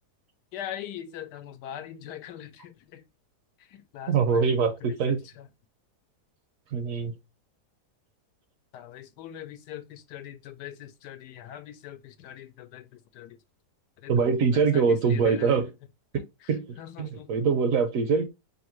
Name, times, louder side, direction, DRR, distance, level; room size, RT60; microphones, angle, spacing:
voice 1, 0.5-3.0 3.6-5.5 8.7-13.4 14.0-15.7 16.1-17.3, left 11 dB, 80° left, 1.2 m, -42 dB
voice 2, 4.1-5.2 6.7-7.1 14.1-15.7 16.5-18.2, right 5 dB, 65° right, 0.9 m, -24 dB
5.0 x 2.6 x 3.0 m
omnidirectional pair, 1.8 m